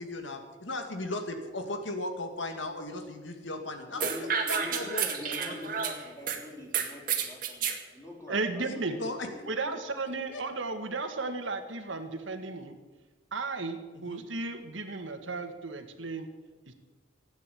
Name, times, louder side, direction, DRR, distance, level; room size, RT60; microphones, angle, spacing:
voice 1, 0.0-4.0 4.5-5.1 8.6-8.7 9.0-9.3 10.3-10.4 14.1-14.2, left 2 dB, 75° left, 5 dB, 2.3 m, -36 dB
voice 2, 3.9-9.8, left 2 dB, 15° left, -1 dB, 3.7 m, -44 dB
sound 1, 4.0-6.4 6.7-7.8, right 7 dB, 45° right, 2.0 m, -30 dB
voice 3, 8.3-9.0 9.5-12.8 13.3-16.3 16.7-16.8, right 3 dB, 80° right, 7 dB, 1.9 m, -34 dB
16.0 x 9.5 x 8.6 m, 1.3 s
head